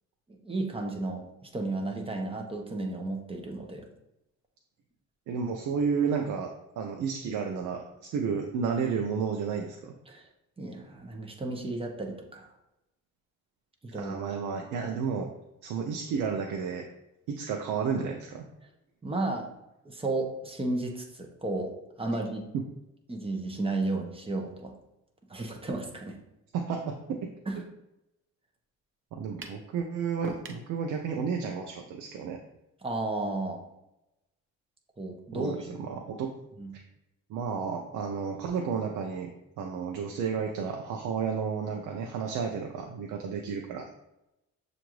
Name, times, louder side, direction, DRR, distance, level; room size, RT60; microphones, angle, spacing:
voice 1, 0.3-3.9 10.1-10.3 10.6-12.5 13.8-14.2 19.0-19.5 19.8-21.7 22.0-22.5 23.1-24.7 25.3-26.2 27.5-27.6 32.8-33.6 35.0-35.5 36.6-36.7, right 2 dB, 20° right, 2 dB, 0.9 m, -33 dB
voice 2, 5.3-9.9 13.9-15.3 15.6-16.9 17.3-18.5 22.5-22.6 26.5-27.3 29.1-32.4 35.3-36.3 37.3-39.3 39.6-43.9, right 6 dB, 90° right, 3 dB, 0.5 m, -32 dB
sound 1, 29.4-29.7 30.2-30.7, right 4 dB, 45° right, 0.6 m, -40 dB
6.7 x 2.6 x 3.1 m, 0.89 s
cardioid pair, 90°, 30 cm